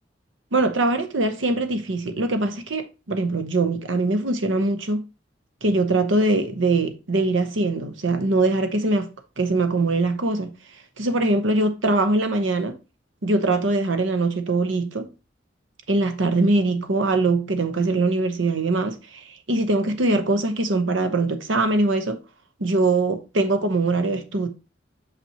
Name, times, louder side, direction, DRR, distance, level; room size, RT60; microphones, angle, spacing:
voice 1, 0.5-5.0 5.6-9.1 9.4-10.5 11.0-12.7 13.2-15.1 15.9-22.2 22.6-24.5, right 2 dB, 90° right, 0.9 m, -22 dB
5.9 x 5.6 x 2.9 m
head